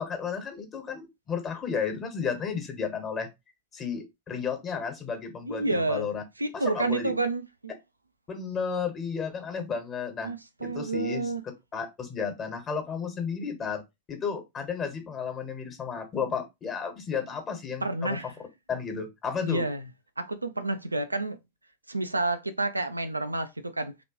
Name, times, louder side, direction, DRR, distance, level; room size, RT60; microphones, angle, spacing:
voice 1, 0.0-3.3 3.7-6.2 6.5-7.1 8.3-10.3 10.6-11.3 11.7-13.8 14.1-18.2 18.7-19.7, left 6 dB, 25° left, 1.3 m, -33 dB
voice 2, 5.5-6.1 6.4-7.7 10.2-11.4 17.8-18.3 19.4-19.8 20.2-21.4 21.9-23.9, right 2 dB, 80° right, 0.4 m, -29 dB
3.3 x 3.0 x 3.0 m
figure-of-eight pair, 90°, 0 cm